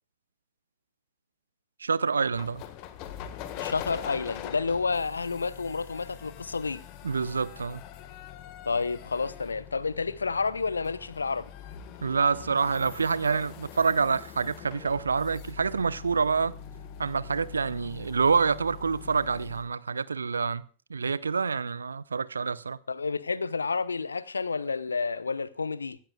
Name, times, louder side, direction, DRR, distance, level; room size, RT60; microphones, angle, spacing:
voice 1, 1.8-2.6 7.0-7.8 12.0-16.5 17.0-20.6 20.9-22.8, right 5 dB, 75° right, 0.6 m, -27 dB
sound 1, 2.3-19.7, left 9 dB, 45° left, 1.6 m, -43 dB
voice 2, 3.6-6.8 8.6-11.5 22.9-26.0, left 4 dB, 75° left, 0.7 m, -30 dB
25.0 x 13.0 x 2.3 m
figure-of-eight pair, 90°, 0 cm